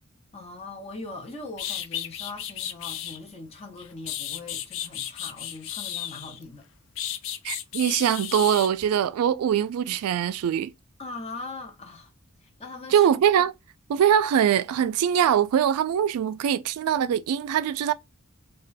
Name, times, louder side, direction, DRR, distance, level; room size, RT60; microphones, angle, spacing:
voice 1, 0.3-6.6 11.0-12.1 12.4-13.1, left 3 dB, 30° left, 0.7 m, -40 dB
sound 1, 1.2-1.3 1.6-3.2 3.8-6.4 7.0-8.7, left 11 dB, 60° left, 0.3 m, -34 dB
voice 2, 7.4-10.7 12.9-13.5 13.9-17.9, right 9 dB, 90° right, 0.3 m, -22 dB
2.3 x 2.2 x 3.9 m
head